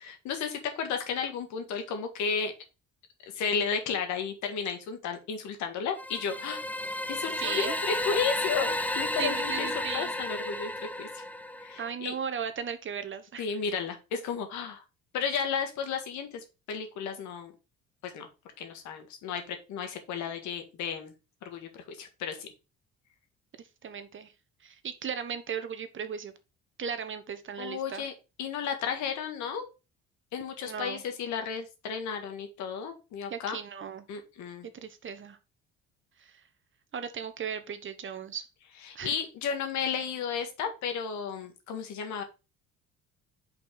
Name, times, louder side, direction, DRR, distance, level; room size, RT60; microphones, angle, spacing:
voice 1, 0.0-2.5 3.3-6.6 7.1-11.2 11.6-12.1 13.4-14.8 15.1-17.5 18.0-18.3 18.6-21.1 21.4-22.5 27.6-28.1 28.4-29.6 30.3-33.6 34.1-34.6 38.9-42.2, left 6 dB, 75° left, 1.8 m, -33 dB
sound 1, 6.0-11.9, left 1 dB, 5° left, 0.6 m, -32 dB
voice 2, 7.4-7.8 9.2-10.1 11.8-13.4 23.5-24.3 24.6-26.3 26.8-28.1 30.6-31.0 33.3-34.0 34.6-35.4 36.2-36.4 36.9-38.5 38.9-39.1, right 7 dB, 40° right, 1.1 m, -36 dB
5.3 x 4.4 x 5.1 m
supercardioid pair, 80°, 29 cm